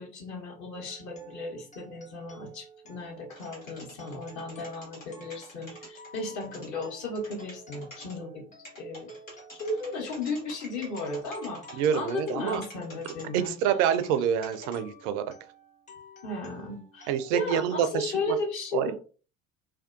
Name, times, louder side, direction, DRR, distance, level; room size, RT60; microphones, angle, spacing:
voice 1, 0.0-8.4 8.8-9.1 9.5-13.6 16.2-18.9, left 2 dB, 50° left, -1 dB, 1.1 m, -35 dB
sound 1, 0.7-18.0, right 1 dB, 20° left, 0.7 m, -53 dB
sound 2, 3.3-6.7 7.1-8.1 8.6-14.2 14.4-14.8, equal, 90° left, 1.1 m, -47 dB
voice 2, 11.8-12.6 13.3-15.2 17.1-18.4 18.7-18.9, right 9 dB, 55° right, 10 dB, 0.5 m, -27 dB
2.5 x 2.2 x 2.5 m, 0.37 s
figure-of-eight pair, 60°, 38 cm